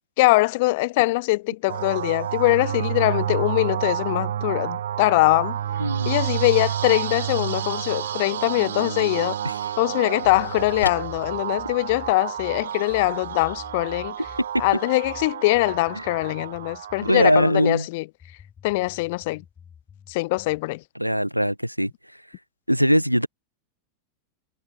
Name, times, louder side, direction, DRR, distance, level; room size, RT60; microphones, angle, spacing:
voice 1, 0.2-5.6 6.1-9.4 9.8-14.1 14.6-18.0 18.6-19.4 20.1-20.8, left 22 dB, 50° left, 0.3 m, -22 dB
sound 1, 1.7-17.3, right 10 dB, 65° right, 0.4 m, -30 dB
voice 2, 5.8-6.1 9.4-9.5 14.5-14.6 15.9-16.1 17.0-17.9 21.0-21.9 22.7-23.3, equal, 90° right, 1.0 m, -21 dB
sound 2, 8.6-8.7 9.3-12.3, left 3 dB, 80° left, 5.9 m, -39 dB
sound 3, 10.2-17.5 18.2-20.7, left 7 dB, 20° left, 1.8 m, -47 dB
figure-of-eight pair, 90°, 0 cm